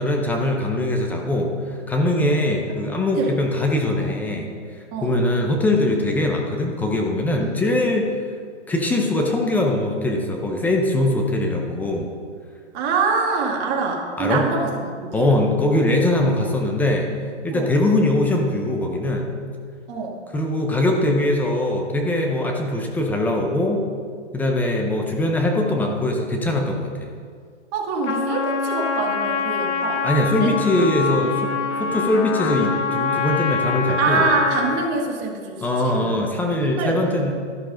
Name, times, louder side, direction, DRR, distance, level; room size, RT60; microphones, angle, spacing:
voice 1, 0.0-4.5 5.0-8.1 8.7-12.1 14.2-14.4 15.1-17.1 17.4-19.3 20.3-23.8 24.3-27.1 30.0-31.5 31.8-34.2 35.6-37.3, left 1 dB, 5° left, 1 dB, 0.5 m, -21 dB
voice 2, 12.7-14.7 15.0-15.5 17.5-17.7 19.9-20.2 27.7-30.0 30.4-30.5 31.8-31.9 34.0-36.1 36.5-37.0, right 4 dB, 25° right, 0 dB, 1.8 m, -25 dB
Trumpet, 28.0-35.0, left 5 dB, 75° left, 1.3 m, -25 dB
12.5 x 11.0 x 3.9 m, 2.1 s
hypercardioid pair, 140°, 36 cm